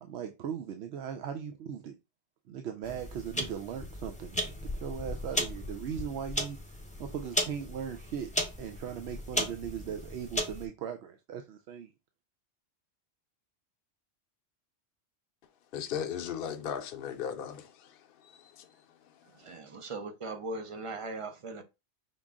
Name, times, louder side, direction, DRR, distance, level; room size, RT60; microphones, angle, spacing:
voice 1, 0.0-2.0 2.5-6.6 7.0-8.3 8.6-11.9, right 8 dB, 70° right, 0.8 m, -38 dB
sound 1, 2.8-10.6, left 1 dB, 10° left, 0.7 m, -36 dB
voice 2, 15.7-19.6, left 8 dB, 60° left, 0.7 m, -38 dB
voice 3, 19.4-21.6, right 2 dB, 35° right, 0.6 m, -39 dB
5.6 x 2.4 x 3.5 m
omnidirectional pair, 1.2 m